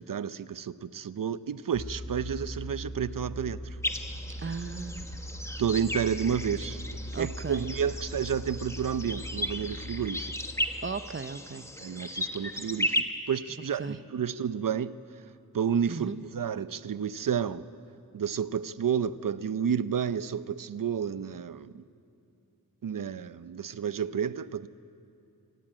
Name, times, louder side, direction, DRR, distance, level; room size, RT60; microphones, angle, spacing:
voice 1, 0.0-3.6 5.6-6.8 7.2-10.4 11.8-15.0 15.5-17.7 18.1-21.8 22.8-24.7, right 8 dB, 70° right, 15 dB, 0.7 m, -31 dB
sound 1, 1.7-10.1, equal, 35° left, 1.4 m, -40 dB
sound 2, 3.8-13.0, equal, 10° left, 1.3 m, -35 dB
voice 2, 4.4-5.1 7.1-7.7 10.8-11.7 13.8-14.0 15.9-16.2, right 4 dB, 35° right, 12 dB, 0.7 m, -36 dB
27.0 x 16.5 x 8.9 m, 2.7 s
wide cardioid pair, 100°, 34 cm